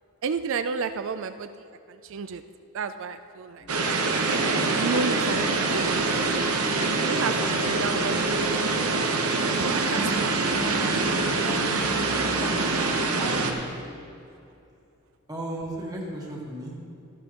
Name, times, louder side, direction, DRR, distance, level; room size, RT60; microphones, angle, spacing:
voice 1, 0.2-2.4 2.7-6.5 7.0-9.1 9.5-10.5, right 5 dB, 60° right, 10 dB, 0.4 m, -33 dB
sound 1, 3.6-14.2, left 1 dB, 35° left, 1.1 m, -38 dB
sound 2, 3.7-13.5, right 3 dB, 85° right, 1.0 m, -25 dB
voice 2, 13.1-13.6 15.3-16.8, right 1 dB, 15° right, -3 dB, 1.6 m, -35 dB
14.0 x 11.5 x 3.0 m, 2.6 s
head